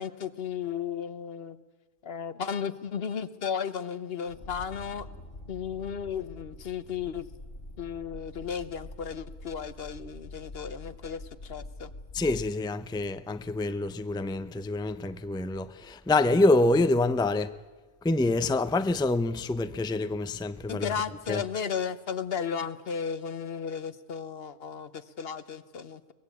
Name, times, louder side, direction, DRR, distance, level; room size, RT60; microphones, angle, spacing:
voice 1, 0.0-1.6 2.0-5.1 5.5-7.3 7.8-11.9 20.7-26.0, left 7 dB, 70° left, 1.2 m, -34 dB
sound 1, 4.3-12.5, left 1 dB, 90° left, 3.4 m, -45 dB
voice 2, 12.1-17.6 18.0-20.9 21.3-21.4, left 2 dB, 5° left, 0.5 m, -26 dB
22.5 x 20.5 x 8.4 m
omnidirectional pair, 1.1 m